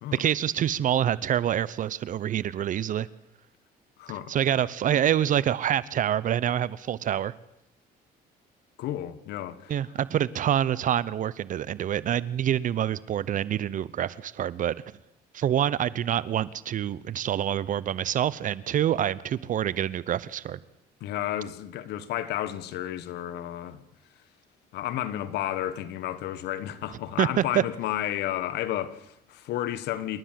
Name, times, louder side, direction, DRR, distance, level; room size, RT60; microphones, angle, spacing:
voice 1, 0.1-3.1 4.3-7.3 9.7-14.7 15.3-20.6 27.2-27.6, right 10 dB, 50° right, 0.7 m, -26 dB
voice 2, 4.0-4.3 8.8-9.7 21.0-23.8 24.7-30.2, left 12 dB, 80° left, 1.5 m, -32 dB
27.5 x 12.5 x 7.6 m
cardioid pair, 110°, 17 cm